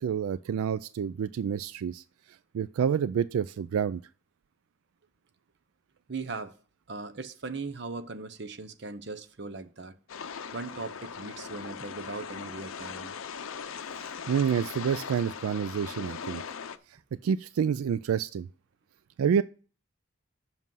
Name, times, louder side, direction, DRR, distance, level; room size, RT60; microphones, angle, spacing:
voice 1, 0.0-2.0 2.5-4.0 14.0-16.4 17.2-18.5 19.2-19.4, right 7 dB, 85° right, 0.3 m, -28 dB
voice 2, 6.1-6.5 6.9-9.9 10.5-13.1, right 3 dB, 55° right, 0.7 m, -39 dB
sound 1, 10.1-16.8, left 6 dB, 75° left, 0.6 m, -40 dB
7.5 x 6.2 x 5.5 m
head